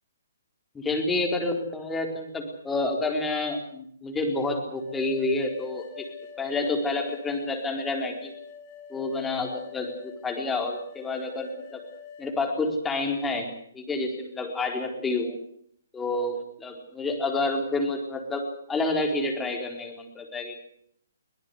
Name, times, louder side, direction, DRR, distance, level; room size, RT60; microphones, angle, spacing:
voice 1, 0.7-6.1 6.4-8.3 8.9-11.8 12.2-13.5 13.7-15.4 15.9-20.6, left 2 dB, 10° left, 3 dB, 4.3 m, -29 dB
sound 1, 4.8-12.4, left 7 dB, 35° left, 5.6 m, -45 dB
23.5 x 18.5 x 8.2 m, 0.66 s
figure-of-eight pair, 135°, 0 cm